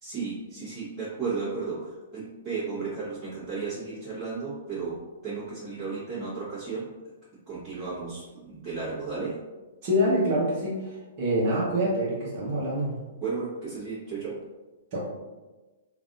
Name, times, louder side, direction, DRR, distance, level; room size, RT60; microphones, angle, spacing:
voice 1, 0.0-6.9 7.5-9.4 13.2-14.4, right 4 dB, 20° right, -14 dB, 1.5 m, -34 dB
voice 2, 9.8-13.0 14.9-15.0, equal, 45° right, -6 dB, 1.1 m, -26 dB
3.3 x 2.6 x 2.5 m, 1.2 s
figure-of-eight pair, 115°, 0 cm